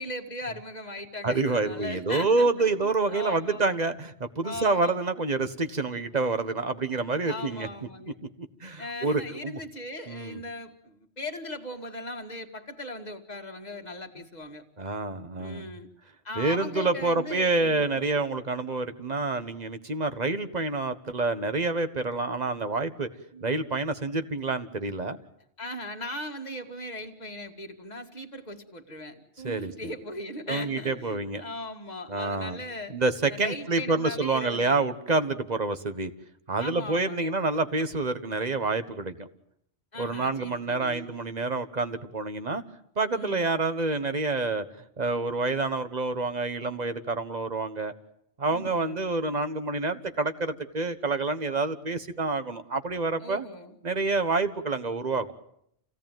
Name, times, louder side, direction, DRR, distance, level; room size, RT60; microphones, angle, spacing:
voice 1, 0.0-3.6 4.4-5.0 7.2-8.2 8.8-14.6 15.4-15.9 16.2-18.0 23.3-23.5 25.6-33.0 33.3-34.8 36.6-37.3 39.9-41.1 43.1-43.5 48.5-49.0 53.2-53.8, left 1 dB, 40° left, 4 dB, 2.1 m, -38 dB
voice 2, 1.2-7.7 8.4-9.6 10.1-10.4 14.8-15.7 16.4-23.1 23.4-25.2 29.4-29.7 30.5-31.4 32.1-32.6 32.9-36.1 36.5-39.3 40.0-42.6 43.0-44.6 45.0-47.9 48.4-53.4 53.8-55.3, right 3 dB, 40° right, 10 dB, 1.5 m, -28 dB
28.0 x 17.0 x 9.2 m, 0.73 s
omnidirectional pair, 1.1 m